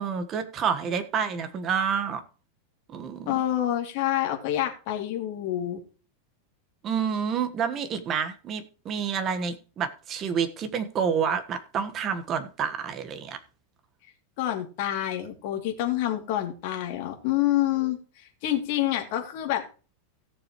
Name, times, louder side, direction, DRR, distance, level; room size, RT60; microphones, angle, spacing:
voice 1, 0.0-2.2 2.9-3.4 6.8-13.4, right 7 dB, 25° right, 1.4 m, -28 dB
voice 2, 3.3-5.8 14.4-18.0 18.4-19.6, left 13 dB, 50° left, 2.7 m, -27 dB
17.0 x 7.0 x 3.1 m
supercardioid pair, 160°, 0 cm